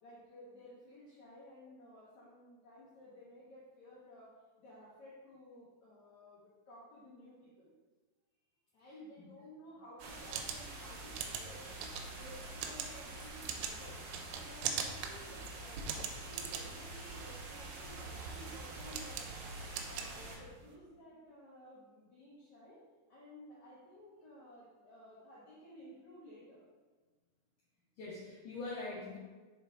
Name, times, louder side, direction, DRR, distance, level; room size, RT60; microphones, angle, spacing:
voice 1, 0.0-7.7 8.7-11.8 12.2-14.0 14.3-19.5 19.8-22.8 23.1-26.6, equal, 85° left, -8 dB, 1.6 m, -55 dB
sound 1, 10.0-20.4, right 2 dB, 70° right, 2.3 m, -46 dB
sound 2, 10.1-20.7, right 7 dB, 90° right, 2.9 m, -43 dB
voice 2, 28.0-29.2, left 3 dB, 65° left, -7 dB, 2.0 m, -43 dB
6.3 x 4.5 x 3.7 m, 1.3 s
omnidirectional pair, 5.0 m